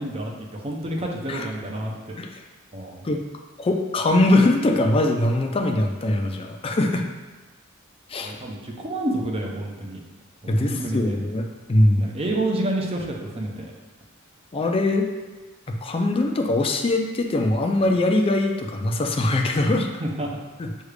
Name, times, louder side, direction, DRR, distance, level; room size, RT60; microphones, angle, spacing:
voice 1, 0.0-2.2 2.7-3.0 8.2-10.0 10.4-11.1 12.0-13.7 20.0-20.3, right 1 dB, 30° right, 0 dB, 0.6 m, -29 dB
voice 2, 3.6-7.0 8.1-8.3 10.5-12.0 14.5-15.1 15.7-19.9 20.6-20.7, left 2 dB, 25° left, 2 dB, 0.4 m, -22 dB
6.3 x 2.4 x 3.2 m, 1.2 s
head